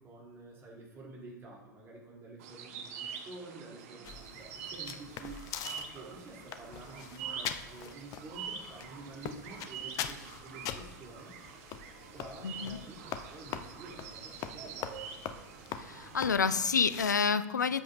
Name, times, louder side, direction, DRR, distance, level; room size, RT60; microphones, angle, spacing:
voice 1, 0.0-5.4 5.7-11.3 12.1-15.0, right 2 dB, 25° right, -3 dB, 3.2 m, -49 dB
sound 1, 2.4-16.4, right 7 dB, 50° right, 1.0 m, -46 dB
sound 2, 4.0-17.1, left 9 dB, 35° left, 0.6 m, -43 dB
voice 2, 12.4-12.8 15.8-17.8, left 5 dB, 80° left, 13 dB, 0.5 m, -29 dB
12.5 x 7.6 x 2.6 m, 1.0 s
figure-of-eight pair, 85°, 10 cm